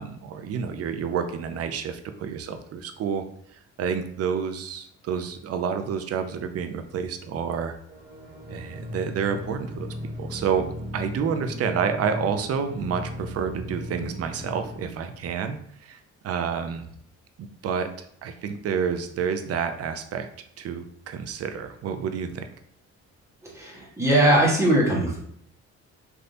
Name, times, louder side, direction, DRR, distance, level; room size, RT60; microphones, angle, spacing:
voice 1, 0.0-3.2 3.5-7.7 8.5-10.7 10.9-16.9 17.4-20.3 20.6-22.5, right 7 dB, 55° right, 8 dB, 0.5 m, -29 dB
sound 1, 7.9-14.9, left 1 dB, 30° right, 1.3 m, -37 dB
voice 2, 23.5-25.2, right 1 dB, 10° right, -5 dB, 1.2 m, -20 dB
3.3 x 2.7 x 2.6 m, 0.66 s
cardioid pair, 90°, 30 cm